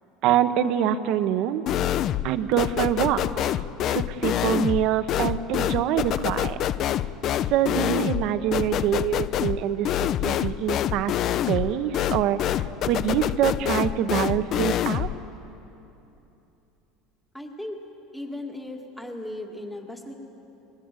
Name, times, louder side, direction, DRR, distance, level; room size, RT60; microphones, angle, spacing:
voice 1, 0.2-1.6 2.2-3.5 3.9-6.6 7.5-11.1 11.5-12.4 12.9-15.1, right 10 dB, 50° right, 11 dB, 1.1 m, -25 dB
sound 1, 1.7-2.3 2.6-15.2, left 11 dB, 35° left, 0.5 m, -26 dB
voice 2, 17.3-17.8 18.1-20.1, left 1 dB, ahead, 3 dB, 1.9 m, -36 dB
24.0 x 21.0 x 9.0 m, 2.9 s
cardioid pair, 165°, 0 cm